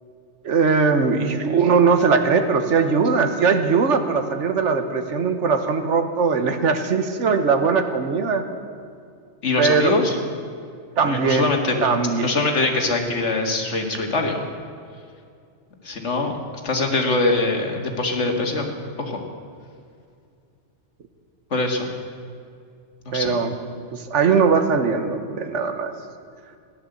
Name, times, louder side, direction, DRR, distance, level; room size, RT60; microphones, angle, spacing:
voice 1, 0.4-8.5 9.6-10.0 11.0-11.5 11.8-12.3 23.1-23.5 23.9-25.9, right 5 dB, 80° right, 7 dB, 1.4 m, -20 dB
voice 2, 9.4-10.2 11.0-11.8 12.2-14.4 15.8-16.4 16.6-18.7 19.0-19.2 21.5-21.9 23.1-23.3, left 2 dB, 75° left, 3 dB, 2.1 m, -23 dB
15.5 x 11.0 x 7.8 m, 2.3 s
omnidirectional pair, 1.2 m